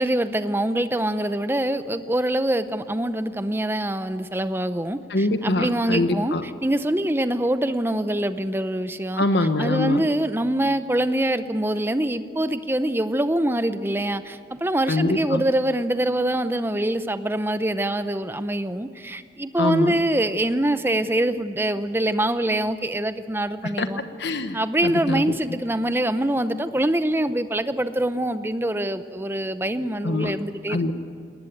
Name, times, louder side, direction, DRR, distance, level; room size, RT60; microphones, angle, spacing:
voice 1, 0.0-9.2 9.6-24.0 24.5-30.8, right 1 dB, 15° right, 11 dB, 0.7 m, -24 dB
voice 2, 5.1-6.4 9.2-10.0 14.9-15.4 19.6-19.9 23.6-23.9 24.2-24.6 24.8-25.2 30.0-30.3 30.7-30.9, left 2 dB, 75° left, 9 dB, 1.1 m, -23 dB
20.5 x 18.5 x 9.2 m, 2.4 s
head